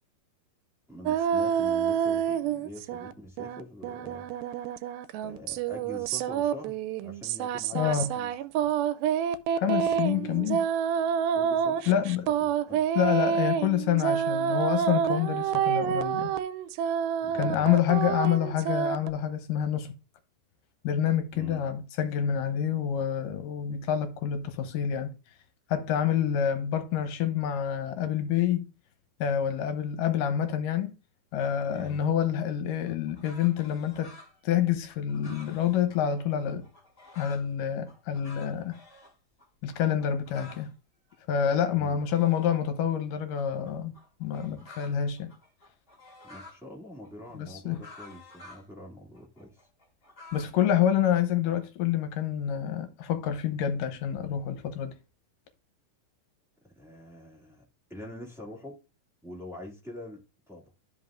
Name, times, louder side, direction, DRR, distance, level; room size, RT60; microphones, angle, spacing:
voice 1, 0.9-4.3 5.2-8.6 10.1-10.3 11.3-12.8 17.2-17.7 21.3-21.7 31.7-32.0 41.7-42.0 46.3-49.5 56.6-57.6 57.9-58.8 59.2-60.2 60.5-60.6, left 1 dB, ahead, 1.1 m, -44 dB
sound 1, 1.1-3.1 3.4-19.1, right 8 dB, 85° right, 2.4 m, -28 dB
voice 2, 7.8-8.1 9.6-10.6 11.9-12.3 13.0-16.3 17.3-19.9 20.8-25.1 25.7-28.7 29.2-30.9 31.3-34.1 34.4-36.7 37.1-38.8 39.6-40.7 41.3-43.9 44.2-45.3 47.4-47.8 50.3-54.9, left 9 dB, 75° left, 2.3 m, -27 dB
sound 2, 31.4-32.1 32.8-37.5 37.9-39.1 39.4-39.5 39.7-40.7 41.1-42.8 43.3-46.6 47.0-48.7 49.1-50.5, left 3 dB, 25° left, 1.1 m, -51 dB
12.5 x 5.3 x 2.5 m
omnidirectional pair, 4.1 m